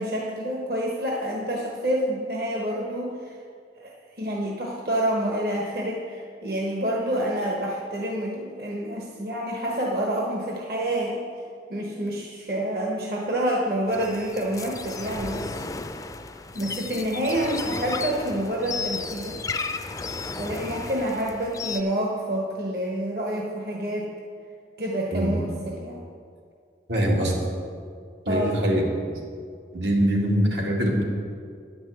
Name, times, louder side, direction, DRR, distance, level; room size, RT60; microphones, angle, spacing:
voice 1, 0.0-3.4 3.8-11.2 11.7-15.5 16.5-19.4 20.4-24.1 24.8-26.0 28.3-28.5, right 1 dB, 60° right, -2 dB, 1.2 m, -28 dB
sound 1, 13.9-21.8, left 4 dB, 20° left, 0.4 m, -34 dB
voice 2, 26.9-27.4 28.3-29.2 29.7-31.1, equal, 90° right, -1 dB, 2.1 m, -23 dB
9.8 x 6.1 x 7.8 m, 2.2 s
head